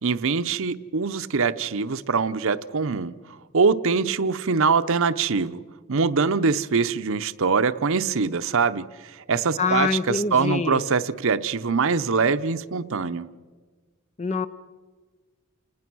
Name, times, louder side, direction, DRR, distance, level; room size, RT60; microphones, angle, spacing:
voice 1, 0.0-3.1 3.5-5.6 5.9-13.3, right 5 dB, 65° right, 12 dB, 0.8 m, -23 dB
voice 2, 9.6-10.8 14.2-14.5, left 4 dB, 30° left, 12 dB, 0.6 m, -25 dB
29.0 x 19.5 x 6.2 m, 1.4 s
head